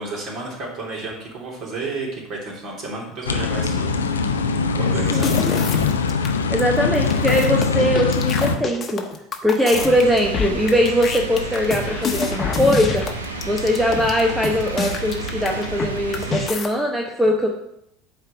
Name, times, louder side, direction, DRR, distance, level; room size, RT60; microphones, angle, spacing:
voice 1, 0.0-4.2 4.7-5.5, right 3 dB, 40° right, -3 dB, 3.0 m, -31 dB
sound 1, 3.2-8.6, left 5 dB, 80° left, 0.5 m, -21 dB
sound 2, 5.1-6.3 6.6-6.7 7.0-15.9 16.1-16.7, left 5 dB, 30° left, 1.1 m, -27 dB
voice 2, 5.1-5.7 6.5-9.0 9.4-13.1 13.4-17.5, equal, 5° right, 1 dB, 0.9 m, -21 dB
sound 3, 9.7-16.5, right 3 dB, 80° right, 0.9 m, -31 dB
8.9 x 3.4 x 5.9 m, 0.78 s
figure-of-eight pair, 70°, 0 cm